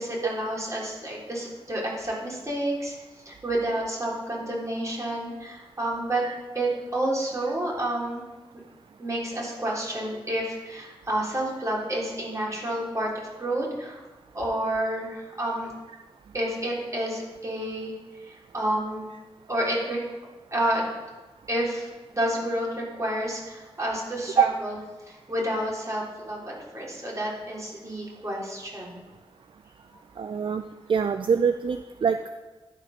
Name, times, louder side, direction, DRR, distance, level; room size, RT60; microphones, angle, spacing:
voice 1, 0.0-2.9 3.3-6.2 6.5-8.2 9.0-14.0 14.3-15.7 16.3-17.9 18.2-19.1 19.5-20.0 20.5-20.9 21.5-24.8 25.1-29.0, right 1 dB, 30° right, -4 dB, 3.6 m, -29 dB
voice 2, 30.2-30.6 30.9-32.3, right 6 dB, 55° right, 8 dB, 0.4 m, -24 dB
11.5 x 5.0 x 5.8 m, 1.2 s
cardioid pair, 50°, 10 cm